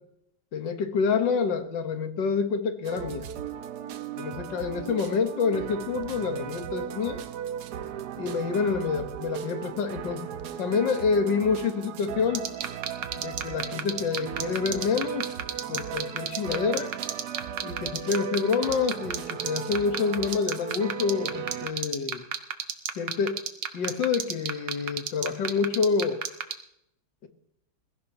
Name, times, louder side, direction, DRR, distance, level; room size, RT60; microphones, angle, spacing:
voice 1, 0.5-3.3 4.2-7.2 8.2-10.3 10.6-12.5 13.2-15.3 15.7-16.9 17.6-22.3 23.0-23.4 23.7-26.2 27.2-27.3, left 5 dB, 65° left, 7 dB, 2.0 m, -27 dB
sound 1, 2.8-21.7, right 9 dB, 65° right, 1.3 m, -37 dB
sound 2, 12.3-26.5, right 8 dB, 90° right, 1.9 m, -29 dB
21.5 x 15.5 x 3.0 m, 0.78 s
omnidirectional pair, 2.2 m